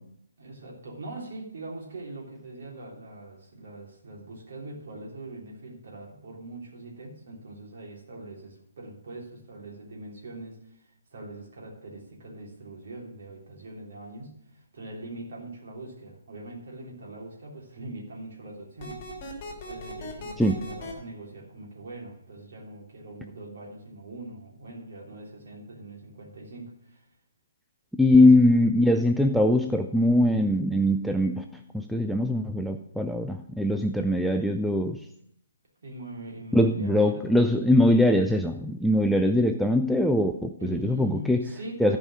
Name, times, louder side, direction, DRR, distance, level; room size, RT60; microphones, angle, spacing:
voice 1, 0.4-19.0 19.4-27.1 28.1-28.3 35.8-37.6 40.6-42.0, right 2 dB, 50° right, -1 dB, 3.3 m, -42 dB
sound 1, 18.8-20.9, left 1 dB, 25° left, 2.3 m, -39 dB
voice 2, 28.0-31.4 31.7-35.0 36.5-41.4 41.8-42.0, left 1 dB, ahead, 4 dB, 0.4 m, -22 dB
14.0 x 5.2 x 6.2 m, 0.74 s
figure-of-eight pair, 135°, 0 cm